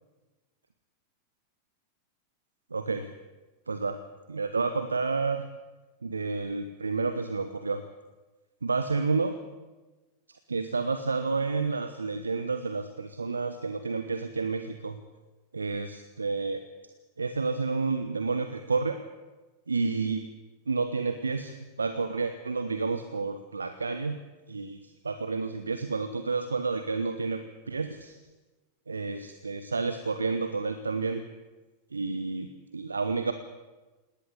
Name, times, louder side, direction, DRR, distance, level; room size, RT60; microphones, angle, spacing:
voice 1, 2.7-3.1 3.7-4.0 4.3-5.5 6.0-7.8 8.6-9.4 10.5-15.0 15.5-16.6 17.2-19.0 19.7-20.3 20.7-24.2 24.5-28.2 28.9-31.3 31.9-33.3, right 4 dB, 75° right, 10 dB, 1.1 m, -30 dB
19.0 x 18.5 x 8.5 m, 1.2 s
figure-of-eight pair, 90°, 0 cm